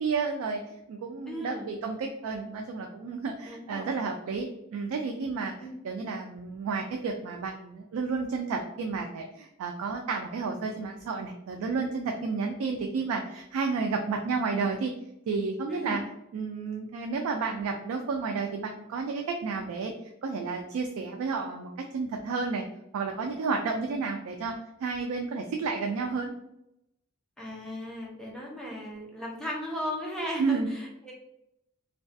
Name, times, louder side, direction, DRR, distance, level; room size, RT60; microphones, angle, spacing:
voice 1, 0.0-5.5 5.8-14.9 15.3-16.0 16.3-22.6 22.9-24.5 24.8-26.3 30.4-30.7, right 4 dB, 80° right, 3 dB, 0.3 m, -31 dB
voice 2, 1.3-1.7 3.4-4.0 5.6-5.7 12.4-12.5 15.7-15.9 27.4-31.1, equal, 5° left, -4 dB, 0.6 m, -36 dB
2.3 x 2.2 x 2.5 m, 0.82 s
head